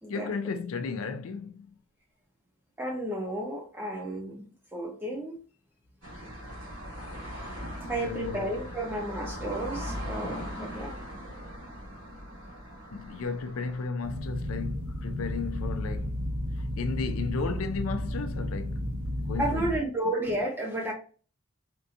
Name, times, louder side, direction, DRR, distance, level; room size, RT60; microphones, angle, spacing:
voice 1, 0.1-1.8 7.9-8.6 12.9-16.3 16.6-19.7, left 5 dB, 80° left, 0.4 m, -34 dB
voice 2, 2.8-4.4 4.7-5.4 7.9-10.9 19.4-20.9, right 1 dB, 10° right, 0.8 m, -32 dB
sound 1, 6.0-13.9, equal, 65° right, 1.9 m, -39 dB
sound 2, 14.0-19.8, left 1 dB, 85° right, 0.9 m, -33 dB
4.4 x 2.7 x 2.5 m
head